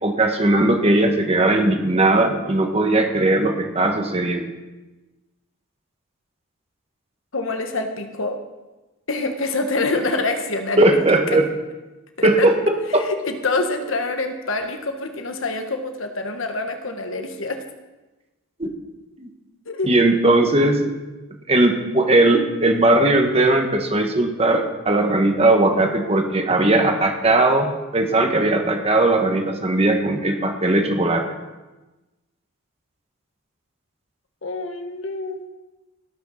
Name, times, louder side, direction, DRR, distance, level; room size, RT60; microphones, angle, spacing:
voice 1, 0.0-4.5 10.8-11.5 12.2-13.0 18.6-18.7 19.2-19.3 19.9-20.9 21.5-31.2, right 2 dB, 30° right, 4 dB, 1.5 m, -18 dB
voice 2, 7.3-8.4 9.1-11.0 11.3-11.4 12.2-12.5 12.9-17.6 19.6-19.9 34.4-35.5, left 3 dB, 70° left, 6 dB, 1.4 m, -26 dB
17.5 x 6.5 x 6.5 m, 1.1 s
head